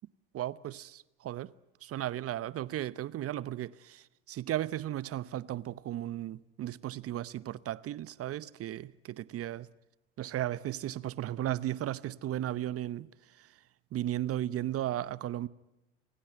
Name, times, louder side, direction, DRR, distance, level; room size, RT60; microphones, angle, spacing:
voice 1, 0.3-1.5 1.8-9.7 10.2-13.1 13.4-13.5 13.9-15.5, right 13 dB, 45° right, 0.9 m, -35 dB
28.5 x 16.0 x 9.5 m
hypercardioid pair, 75°, 32 cm